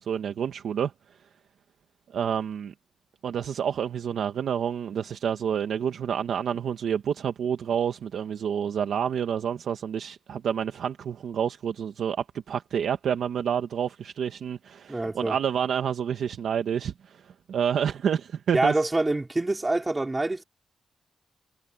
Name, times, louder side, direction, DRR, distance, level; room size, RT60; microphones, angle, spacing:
voice 1, 0.0-1.2 2.1-2.7 3.2-18.7, right 8 dB, 65° right, 1.3 m, -29 dB
voice 2, 14.9-15.3 18.5-20.4, right 2 dB, 15° right, 4.6 m, -25 dB
wide cardioid pair, 175°, 0 cm